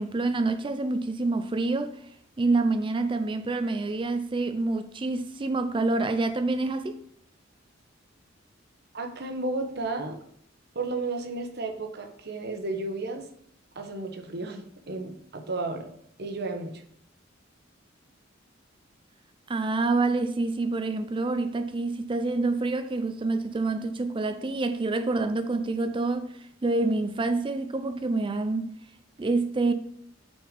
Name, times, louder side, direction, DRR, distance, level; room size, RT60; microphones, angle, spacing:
voice 1, 0.0-2.0 2.4-7.0 19.5-26.3 26.6-28.7 29.2-29.7, right 3 dB, 25° right, 0.4 m, -27 dB
voice 2, 8.9-10.2 10.7-13.3 13.7-15.9 16.2-16.8, right 2 dB, 55° right, 1.1 m, -33 dB
6.2 x 4.4 x 5.2 m
head